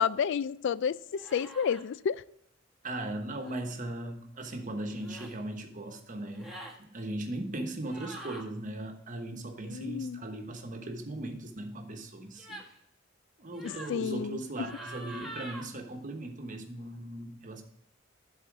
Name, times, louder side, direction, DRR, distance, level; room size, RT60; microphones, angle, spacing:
voice 1, 0.0-2.2 9.6-10.2 13.6-14.4, left 7 dB, 65° left, 18 dB, 0.3 m, -30 dB
sound 1, 1.1-1.8 3.4-3.6 4.9-5.4 6.3-6.8 7.8-8.4 12.4-12.8 13.5-14.0 14.6-15.7, right 1 dB, ahead, 1.3 m, -45 dB
voice 2, 2.8-12.6 13.4-17.6, right 1 dB, 40° right, 4 dB, 1.1 m, -38 dB
11.0 x 4.3 x 4.7 m, 0.77 s
head